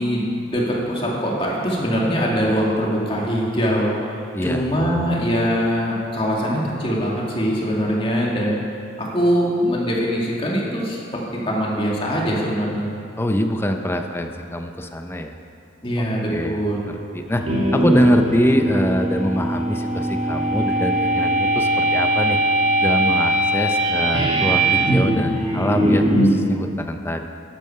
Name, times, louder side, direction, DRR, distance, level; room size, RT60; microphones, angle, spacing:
voice 1, 0.0-8.6 9.0-12.9 15.8-16.8, equal, 30° left, -4 dB, 2.1 m, -22 dB
voice 2, 4.3-4.6 13.2-15.4 16.0-16.6 16.9-17.4 17.7-22.4 22.8-27.3, equal, 10° left, 5 dB, 0.6 m, -24 dB
sound 1, 17.3-26.4, right 1 dB, 35° right, 1.9 m, -20 dB
12.0 x 8.9 x 5.6 m, 2.6 s
head